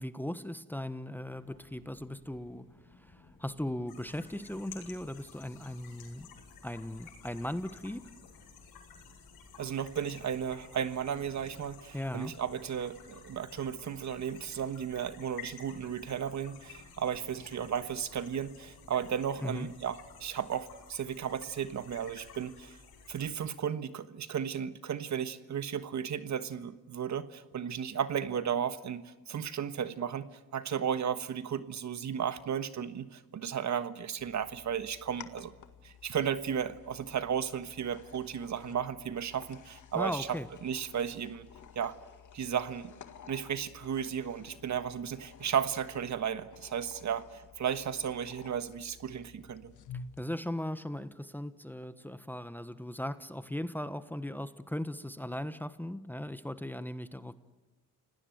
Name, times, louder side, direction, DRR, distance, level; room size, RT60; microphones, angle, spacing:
voice 1, 0.0-2.7 3.0-6.3 6.6-8.1 11.9-12.3 19.4-19.7 39.9-40.5 50.2-57.3, left 1 dB, 5° left, 12 dB, 1.1 m, -38 dB
sound 1, 1.3-20.2, left 3 dB, 35° left, 7.8 m, -61 dB
sound 2, 3.9-23.3, left 6 dB, 85° left, 5.4 m, -53 dB
voice 2, 9.6-22.8 23.1-35.5 35.8-40.3 40.6-41.5 41.7-42.0 42.3-42.9 43.3-49.7, right 8 dB, 50° right, 12 dB, 1.4 m, -34 dB
sound 3, 34.2-50.2, left 6 dB, 55° left, 1.9 m, -52 dB
29.5 x 18.5 x 7.9 m, 1.2 s
cardioid pair, 80°, 35 cm